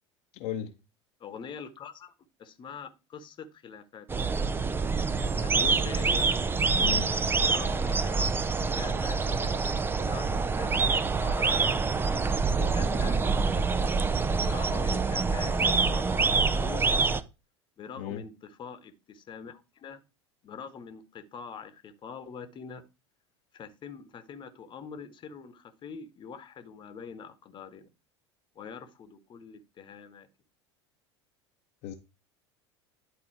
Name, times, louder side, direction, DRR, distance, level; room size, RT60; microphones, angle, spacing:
voice 1, 0.3-0.7 6.8-7.1 18.0-18.2 31.8-32.0, left 9 dB, 50° left, 0.9 m, -35 dB
voice 2, 1.2-2.1 2.4-4.3 5.4-6.3 7.4-9.6 10.0-12.2 12.5-13.6 14.4-16.9 17.8-20.0 20.4-22.8 23.5-27.9 28.5-30.3, left 6 dB, 30° left, 1.1 m, -44 dB
sound 1, 4.1-17.2, right 4 dB, 15° right, 0.5 m, -26 dB
11.0 x 3.9 x 4.6 m
figure-of-eight pair, 75°, 15 cm